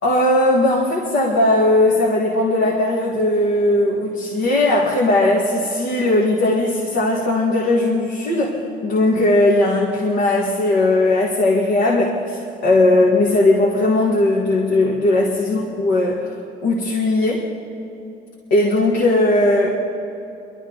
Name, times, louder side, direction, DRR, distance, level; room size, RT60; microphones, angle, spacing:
voice 1, 0.0-16.4 16.6-17.5 18.5-19.7, left 2 dB, 90° left, -4 dB, 1.9 m, -18 dB
23.0 x 12.5 x 4.0 m, 2.8 s
cardioid pair, 110°, 17 cm